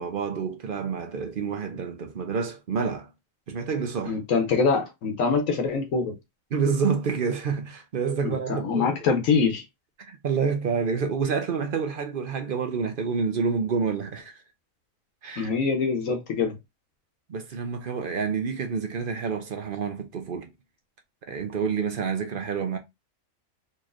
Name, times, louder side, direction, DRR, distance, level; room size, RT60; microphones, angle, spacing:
voice 1, 0.0-3.1 3.5-4.2 6.5-8.9 10.1-14.3 15.2-15.5 17.3-20.5 21.3-22.8, right 5 dB, 50° right, 0.7 m, -28 dB
voice 2, 4.1-6.2 8.2-9.7 15.4-16.6, left 5 dB, 75° left, 1.2 m, -24 dB
4.0 x 3.1 x 2.4 m
omnidirectional pair, 1.4 m